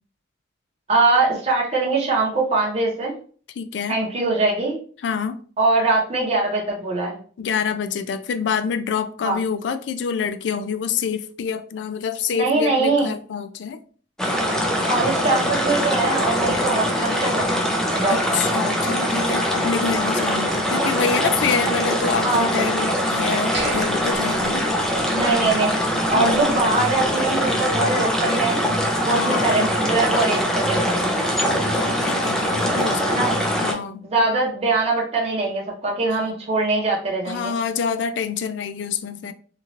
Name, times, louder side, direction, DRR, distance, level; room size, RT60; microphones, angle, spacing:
voice 1, 0.9-3.1 3.9-4.8 5.6-7.2 9.2-9.4 12.3-13.1 14.9-17.6 17.9-18.4 22.2-22.5 25.1-28.7 29.0-31.1 33.0-33.3 34.0-37.5, right 3 dB, 35° right, 0.8 m, -22 dB
voice 2, 3.6-4.0 5.0-5.4 7.4-13.8 18.1-24.7 26.1-26.5 29.1-29.6 31.5-34.1 36.1-36.2 37.3-39.3, left 6 dB, 70° left, 0.3 m, -27 dB
sound 1, 14.2-33.7, equal, 5° left, 0.4 m, -22 dB
sound 2, 23.5-25.5 25.8-25.9 26.4-26.6, right 2 dB, 65° right, 1.2 m, -33 dB
3.0 x 2.4 x 2.7 m
head